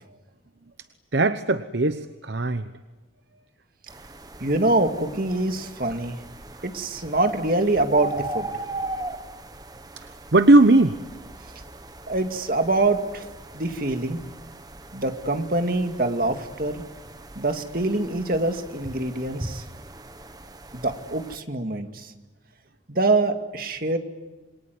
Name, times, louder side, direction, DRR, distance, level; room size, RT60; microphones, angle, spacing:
voice 1, 1.1-2.7 10.0-10.9, right 2 dB, 65° right, 10 dB, 0.9 m, -19 dB
sound 1, 3.9-21.4, right 2 dB, 20° right, 1.3 m, -39 dB
voice 2, 4.4-6.2 6.6-8.5 12.1-13.2 13.5-14.2 14.9-16.8 17.4-19.6 20.7-22.1 22.9-24.0, right 2 dB, 50° right, 6 dB, 2.3 m, -24 dB
28.0 x 22.5 x 9.5 m, 1.2 s
head